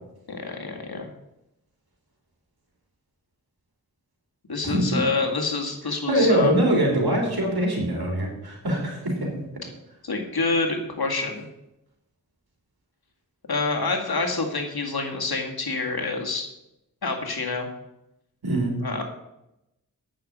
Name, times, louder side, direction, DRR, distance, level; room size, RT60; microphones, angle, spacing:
voice 1, 0.3-1.1 4.5-6.6 10.0-11.5 13.5-16.5 17.0-17.7 18.8-19.0, left 3 dB, 85° left, 2 dB, 2.1 m, -27 dB
voice 2, 4.6-5.0 6.1-9.3 18.4-18.8, right 1 dB, 90° right, 0 dB, 3.5 m, -23 dB
9.2 x 6.8 x 8.5 m, 0.88 s
wide cardioid pair, 50°, 36 cm